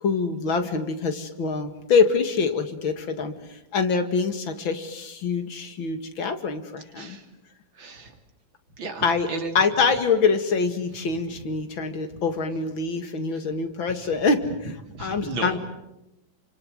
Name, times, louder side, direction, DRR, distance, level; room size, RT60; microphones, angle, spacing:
voice 1, 0.0-7.2 9.0-9.3 9.5-14.7 15.0-15.6, left 5 dB, 85° left, 8 dB, 2.9 m, -25 dB
voice 2, 7.8-8.1 8.8-9.5 12.1-12.2 14.0-14.1 14.9-15.6, right 3 dB, 80° right, 5 dB, 3.7 m, -34 dB
29.0 x 25.0 x 7.9 m, 0.88 s
omnidirectional pair, 2.1 m